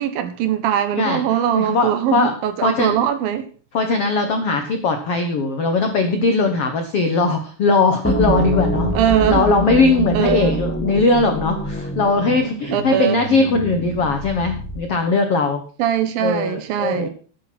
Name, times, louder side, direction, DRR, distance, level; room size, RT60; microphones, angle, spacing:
voice 1, 0.0-3.5 8.9-9.5 10.1-10.6 12.7-13.2 15.8-17.1, right 10 dB, 70° right, 2.6 m, -21 dB
voice 2, 0.9-2.3 2.6-3.0 3.7-8.9 9.3-15.6 16.2-17.1, left 3 dB, 90° left, 1.3 m, -19 dB
sound 1, 8.0-15.0, right 1 dB, 15° left, 0.5 m, -25 dB
12.5 x 9.4 x 6.0 m
omnidirectional pair, 4.9 m